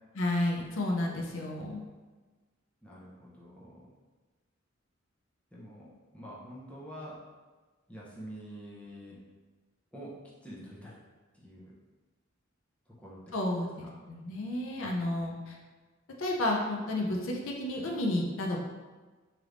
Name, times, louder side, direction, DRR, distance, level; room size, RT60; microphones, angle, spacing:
voice 1, 0.1-1.8 13.3-15.6 16.2-18.6, left 1 dB, 75° left, 0 dB, 0.5 m, -31 dB
voice 2, 2.8-3.9 5.5-7.2 7.9-9.2 9.9-10.1 10.4-10.9 11.4-11.7 13.0-13.2, equal, 5° left, -7 dB, 0.6 m, -46 dB
3.2 x 3.0 x 2.5 m, 1.3 s
head